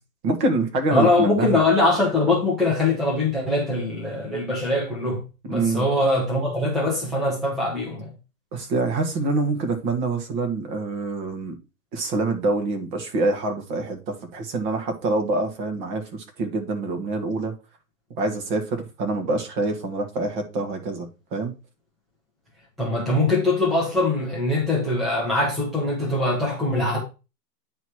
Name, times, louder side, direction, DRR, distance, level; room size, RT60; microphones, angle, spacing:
voice 1, 0.2-1.6 5.5-5.8 8.5-11.6 11.9-17.5 18.2-21.5, right 2 dB, 30° right, 1.5 m, -26 dB
voice 2, 0.9-8.1 22.8-27.0, left 2 dB, ahead, 0.8 m, -22 dB
9.3 x 3.2 x 5.8 m
hypercardioid pair, 150°, 49 cm